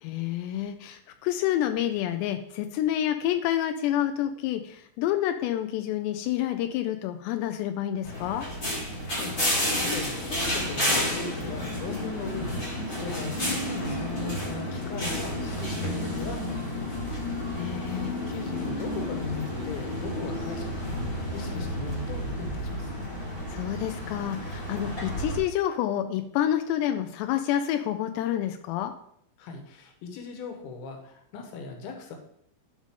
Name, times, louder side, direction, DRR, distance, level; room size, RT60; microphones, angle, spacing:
voice 1, 0.0-8.5 17.6-18.2 23.5-28.9, left 11 dB, 90° left, 7 dB, 2.8 m, -28 dB
sound 1, 8.0-25.4, left 1 dB, 40° left, 0.9 m, -31 dB
voice 2, 8.8-16.9 17.9-21.0 21.3-22.9 29.4-32.2, left 4 dB, 70° left, 3 dB, 2.9 m, -39 dB
12.5 x 5.1 x 3.7 m, 0.69 s
omnidirectional pair, 4.9 m